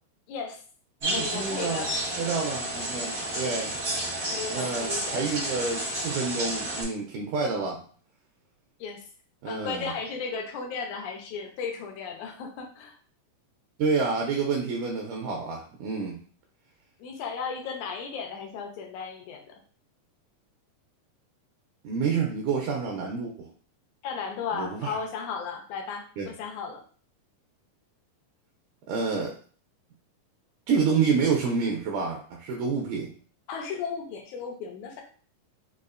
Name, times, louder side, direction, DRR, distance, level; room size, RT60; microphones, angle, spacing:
voice 1, 0.3-0.6 1.0-1.9 4.3-5.2 8.8-9.0 9.4-12.9 17.0-19.5 24.0-26.8 33.5-35.0, left 5 dB, 80° left, 2 dB, 1.8 m, -35 dB
sound 1, 1.0-6.8, right 1 dB, 65° right, 0.7 m, -31 dB
voice 2, 1.0-1.9 2.2-3.7 4.5-7.8 9.4-9.9 13.8-16.2 21.8-23.5 24.5-25.0 26.2-26.3 28.9-29.3 30.7-33.1, right 5 dB, 80° right, 0 dB, 1.9 m, -28 dB
5.5 x 2.3 x 2.5 m, 0.43 s
omnidirectional pair, 3.9 m